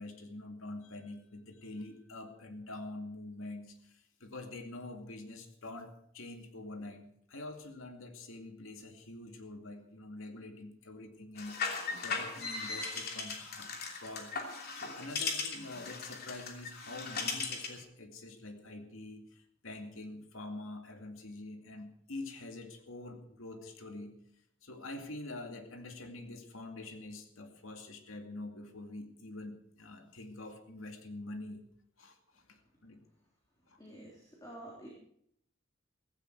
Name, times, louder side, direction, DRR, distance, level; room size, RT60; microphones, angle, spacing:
voice 1, 0.0-11.6 12.0-14.3 14.7-24.1 24.6-31.6 32.0-33.0 33.7-33.8, left 2 dB, 85° left, 5 dB, 2.4 m, -46 dB
sound 1, 11.4-17.8, left 4 dB, 50° left, 3.0 m, -38 dB
voice 2, 33.8-34.9, right 1 dB, 20° left, -3 dB, 3.5 m, -49 dB
16.0 x 16.0 x 4.7 m, 0.70 s
head